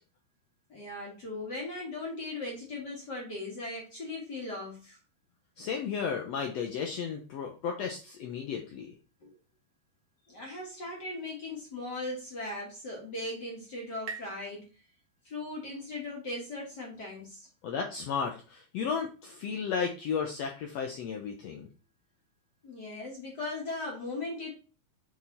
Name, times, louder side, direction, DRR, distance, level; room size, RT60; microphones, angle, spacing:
voice 1, 0.7-5.0 9.2-9.4 10.3-14.6 15.2-17.5 22.6-24.5, left 2 dB, 40° left, -2 dB, 1.8 m, -38 dB
voice 2, 5.6-8.9 17.6-21.7, left 6 dB, 85° left, 3 dB, 1.4 m, -34 dB
sound 1, 12.6-16.0, right 5 dB, 70° right, 1.0 m, -48 dB
7.2 x 4.0 x 4.2 m, 0.34 s
omnidirectional pair, 4.0 m